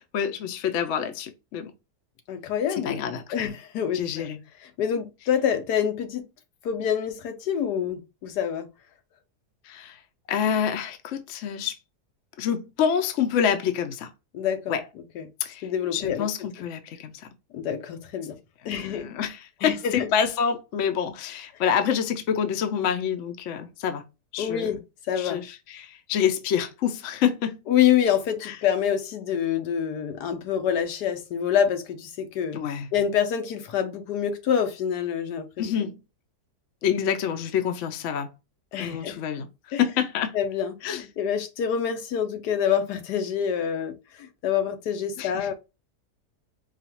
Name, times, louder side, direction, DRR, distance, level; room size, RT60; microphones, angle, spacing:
voice 1, 0.1-1.7 2.8-3.5 3.9-4.4 9.7-10.0 10.3-11.8 12.4-14.1 14.7-14.8 15.4-15.7 15.9-17.1 18.6-24.0 24.3-24.7 25.2-27.6 28.4-28.5 32.5-32.9 35.6-36.0 36.8-38.3 38.8-39.5 39.8-40.3 40.8-41.0 45.2-45.5, left 8 dB, 60° left, 0.9 m, -27 dB
voice 2, 2.3-3.0 3.3-4.3 4.6-6.2 6.6-8.7 14.3-14.8 15.1-15.3 15.6-16.5 17.5-18.4 18.6-19.1 19.6-20.1 24.4-24.8 25.1-25.4 27.7-32.6 32.9-35.7 38.7-39.2 39.7-39.8 40.3-45.5, left 8 dB, 80° left, 1.3 m, -26 dB
4.9 x 2.4 x 2.9 m
omnidirectional pair, 1.7 m